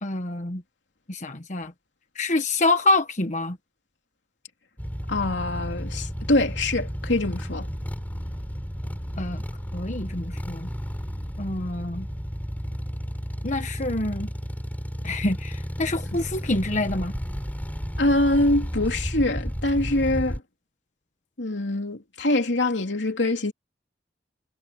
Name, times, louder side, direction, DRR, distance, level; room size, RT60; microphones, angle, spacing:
voice 1, 0.0-0.6 1.1-1.7 2.2-3.6 9.2-9.4 9.7-10.7 11.4-12.1 13.4-14.3 15.0-17.1, left 2 dB, 45° left, 1.3 m, -26 dB
sound 1, 4.8-20.4, equal, 10° left, 5.1 m, -32 dB
voice 2, 5.1-7.7 18.0-20.4 21.4-23.5, left 2 dB, 80° left, 3.0 m, -24 dB
head